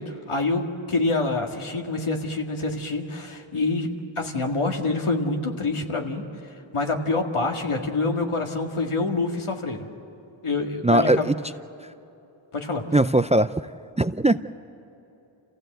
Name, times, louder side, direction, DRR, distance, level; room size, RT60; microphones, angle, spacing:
voice 1, 0.0-3.9 4.2-6.2 6.7-9.9 10.4-11.2 12.5-12.8, left 3 dB, 75° left, 2 dB, 2.1 m, -26 dB
voice 2, 10.8-11.3 12.9-13.5 14.0-14.4, right 1 dB, 15° right, 12 dB, 0.4 m, -19 dB
27.5 x 16.0 x 7.9 m, 2.9 s
cardioid pair, 45°, 50 cm